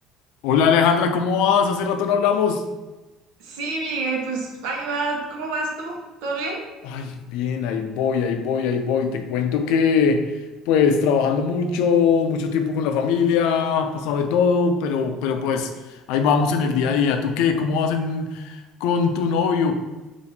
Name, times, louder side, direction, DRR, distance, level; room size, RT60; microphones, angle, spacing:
voice 1, 0.4-2.6 6.8-10.3 10.7-15.7 16.1-19.7, left 6 dB, 75° left, 7 dB, 0.4 m, -21 dB
voice 2, 3.4-6.7, right 3 dB, 85° right, 1 dB, 0.8 m, -28 dB
4.0 x 2.5 x 4.1 m, 1.1 s
cardioid pair, 175°, 0 cm